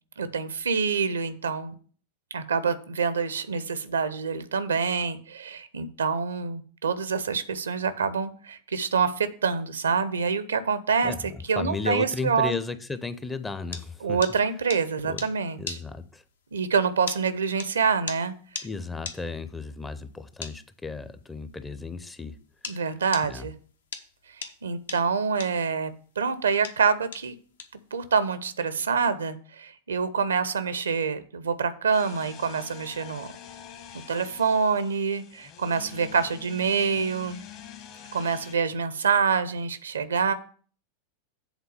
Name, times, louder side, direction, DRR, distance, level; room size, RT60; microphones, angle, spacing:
voice 1, 0.2-1.7 2.3-11.1 11.5-12.5 14.0-15.8 16.5-18.7 22.7-23.5 24.6-27.4 27.7-33.3 34.1-37.4 38.1-40.3, right 5 dB, 70° right, 0.6 m, -26 dB
voice 2, 11.0-14.2 15.0-15.3 15.6-16.2 18.6-22.4 22.7-22.8 23.3-23.5, left 3 dB, 10° left, 0.6 m, -34 dB
sound 1, 13.1-22.8 23.1-28.4, left 5 dB, 70° left, 0.8 m, -39 dB
sound 2, 31.9-38.6, left 9 dB, 40° left, 1.2 m, -46 dB
8.1 x 3.8 x 6.7 m
figure-of-eight pair, 90°, 0 cm